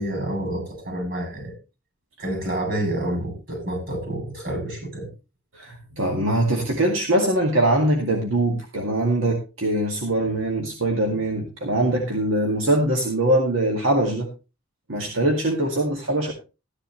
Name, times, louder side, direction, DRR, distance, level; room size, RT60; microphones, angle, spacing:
voice 1, 0.0-1.5 2.2-5.1, right 1 dB, 50° right, 2 dB, 7.6 m, -28 dB
voice 2, 5.5-14.3 14.9-16.3, right 1 dB, 80° right, 1 dB, 2.2 m, -22 dB
14.5 x 10.5 x 3.2 m, 0.30 s
head